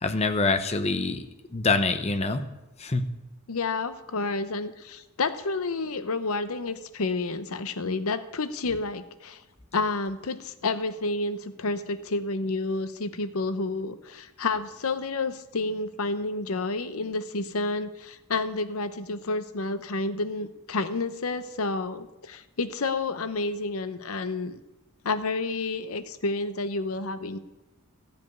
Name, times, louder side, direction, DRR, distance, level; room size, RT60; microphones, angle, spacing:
voice 1, 0.0-2.4 2.8-3.1, left 3 dB, 30° left, 8 dB, 0.8 m, -25 dB
voice 2, 3.5-9.4 9.7-24.6 25.0-27.4, left 3 dB, 75° left, 11 dB, 0.8 m, -30 dB
14.5 x 5.2 x 9.3 m, 1.0 s
head